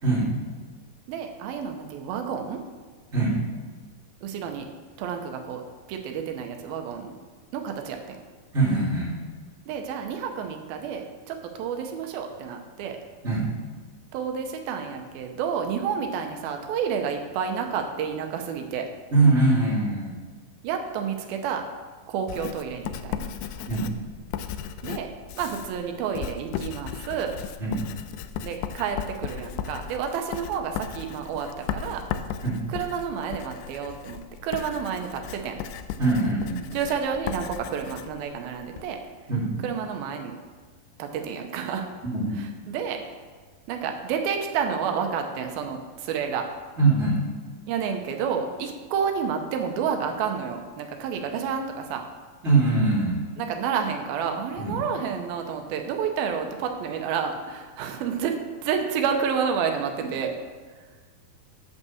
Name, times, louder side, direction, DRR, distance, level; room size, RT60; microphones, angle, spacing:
voice 1, 1.1-2.6 4.2-4.7 5.0-5.6 5.9-7.1 7.5-8.2 9.7-13.0 14.1-18.9 20.6-21.6 22.1-23.3 24.8-25.1 25.4-27.3 28.4-32.0 32.7-35.5 36.7-39.0 39.6-40.4 41.0-41.9 42.7-43.0 43.7-46.5 47.7-52.0 53.5-58.4 58.6-60.3, right 7 dB, 85° right, 4 dB, 2.6 m, -30 dB
voice 2, 8.5-9.1 13.2-13.5 19.1-20.2 23.7-23.9 27.6-27.8 32.4-32.6 36.0-36.6 39.3-39.5 42.0-42.4 46.8-47.2 52.4-53.2 54.6-54.8 60.0-60.1, right 3 dB, 20° right, -10 dB, 2.4 m, -22 dB
Writing, 22.3-38.9, left 9 dB, 85° left, 1.8 m, -36 dB
9.2 x 5.4 x 7.1 m, 1.4 s
omnidirectional pair, 4.2 m